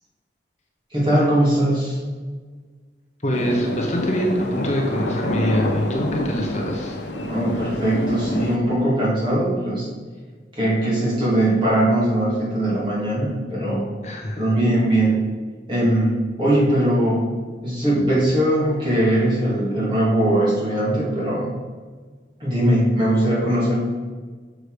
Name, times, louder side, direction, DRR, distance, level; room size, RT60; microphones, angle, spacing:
voice 1, 0.9-2.0 7.3-9.9 10.6-13.9 14.4-15.2 15.7-17.3 17.6-21.5 22.4-23.8, right 1 dB, 25° right, -6 dB, 2.7 m, -20 dB
voice 2, 3.2-7.0 14.0-14.6, equal, 40° left, 0 dB, 1.0 m, -24 dB
sound 1, 3.3-8.6, left 1 dB, 85° left, 0.9 m, -27 dB
6.7 x 6.4 x 5.0 m, 1.5 s
head